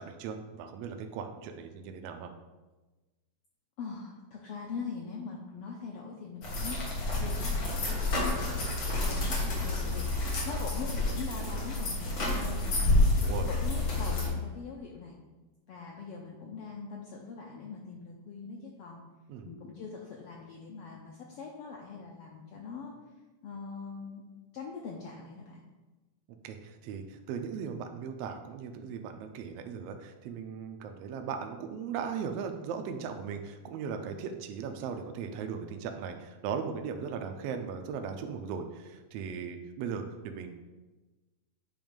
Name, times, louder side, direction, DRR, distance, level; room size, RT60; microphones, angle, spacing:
voice 1, 0.0-2.3 10.5-10.7 13.2-13.5 19.3-19.5 26.4-40.5, right 6 dB, 80° right, 5 dB, 1.4 m, -38 dB
voice 2, 3.8-6.8 7.1-8.5 9.0-13.1 13.5-15.2 15.7-19.0 19.4-22.9 23.4-24.2 24.5-25.6, left 5 dB, 85° left, -1 dB, 1.3 m, -42 dB
sound 1, 6.4-14.3, left 2 dB, 50° left, 1.8 m, -29 dB
8.7 x 3.1 x 5.1 m, 1.2 s
omnidirectional pair, 3.4 m